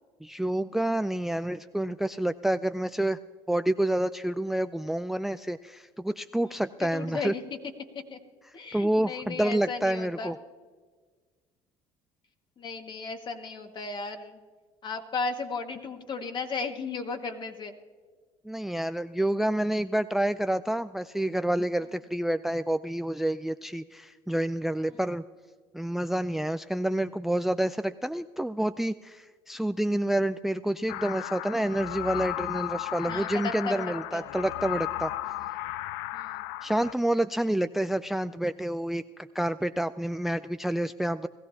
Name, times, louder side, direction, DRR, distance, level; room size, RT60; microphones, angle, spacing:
voice 1, 0.2-3.2 3.5-7.3 8.7-10.4 18.4-25.2 25.7-35.5 36.6-41.3, right 1 dB, 5° right, 13 dB, 0.3 m, -28 dB
voice 2, 6.9-7.4 8.1-8.2 8.5-10.3 12.6-14.4 14.8-17.7 33.0-34.2 36.1-36.5, left 4 dB, 45° left, 5 dB, 1.8 m, -35 dB
sound 1, 30.9-36.9, left 15 dB, 85° left, 0.4 m, -35 dB
19.0 x 15.0 x 2.8 m, 1.5 s
supercardioid pair, 85°, 11 cm